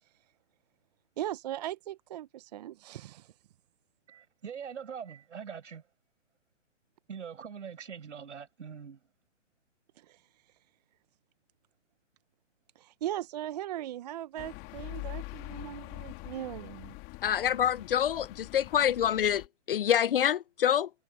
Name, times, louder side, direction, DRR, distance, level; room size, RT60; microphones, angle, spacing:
voice 1, 1.2-3.3 10.0-10.2 12.8-16.9, right 12 dB, 35° right, 0.8 m, -39 dB
voice 2, 4.1-5.8 7.1-9.0, right 7 dB, 70° right, 6.1 m, -43 dB
sound 1, 14.4-19.5, left 25 dB, 25° left, 3.2 m, -44 dB
voice 3, 17.2-20.9, left 10 dB, 50° left, 0.5 m, -26 dB
hypercardioid pair, 145°, 37 cm